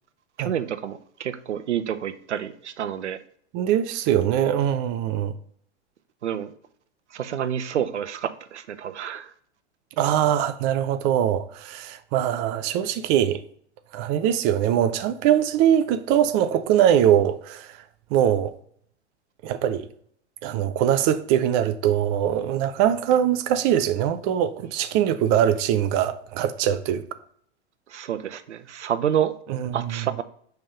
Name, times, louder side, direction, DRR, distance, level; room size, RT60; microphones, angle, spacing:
voice 1, 0.4-3.2 6.2-6.5 7.1-9.3 27.9-29.3 29.7-30.2, right 9 dB, 75° right, 0.6 m, -28 dB
voice 2, 3.5-5.3 10.0-13.4 13.9-17.7 18.1-18.5 19.4-19.9 20.4-27.0 29.6-30.0, right 10 dB, 30° right, 0.4 m, -22 dB
5.2 x 3.4 x 5.5 m
figure-of-eight pair, 100°, 35 cm